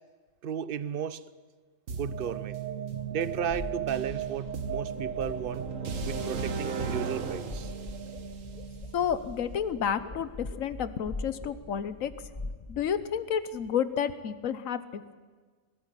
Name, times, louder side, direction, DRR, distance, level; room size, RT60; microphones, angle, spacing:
voice 1, 0.4-1.3 1.9-2.6 3.1-5.6 6.1-7.7, right 8 dB, 50° right, 0.8 m, -34 dB
sound 1, 1.9-9.8, right 6 dB, 80° right, 1.6 m, -35 dB
sound 2, 3.5-13.7, left 2 dB, 30° left, 1.3 m, -43 dB
voice 2, 8.9-12.1 12.7-15.2, left 8 dB, 90° left, 1.3 m, -30 dB
20.0 x 13.5 x 9.9 m
omnidirectional pair, 1.3 m